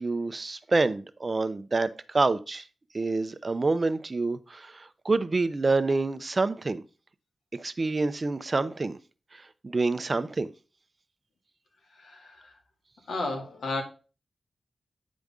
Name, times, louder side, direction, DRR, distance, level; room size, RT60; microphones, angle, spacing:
voice 1, 0.0-2.6 2.9-6.8 7.6-9.0 9.6-10.5, right 3 dB, 35° right, 0.6 m, -27 dB
voice 2, 12.0-12.5 13.1-13.8, left 2 dB, 90° left, 2.1 m, -33 dB
9.3 x 5.2 x 3.6 m
wide cardioid pair, 120°, 0 cm